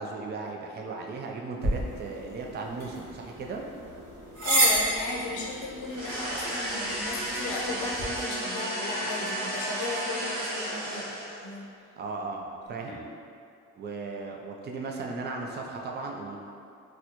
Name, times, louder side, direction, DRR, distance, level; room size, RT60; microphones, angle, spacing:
voice 1, 0.0-3.6 12.0-13.0 13.8-16.4, right 3 dB, 35° right, 1 dB, 0.4 m, -36 dB
sound 1, 1.6-8.1, right 1 dB, 55° right, 1.4 m, -31 dB
voice 2, 4.4-11.0 11.4-11.6 12.8-13.0, left 2 dB, 80° left, -3 dB, 0.7 m, -35 dB
sound 2, 5.9-11.5, right 1 dB, 80° right, 0.9 m, -33 dB
4.1 x 2.2 x 2.9 m, 2.5 s
cardioid pair, 90°, 30 cm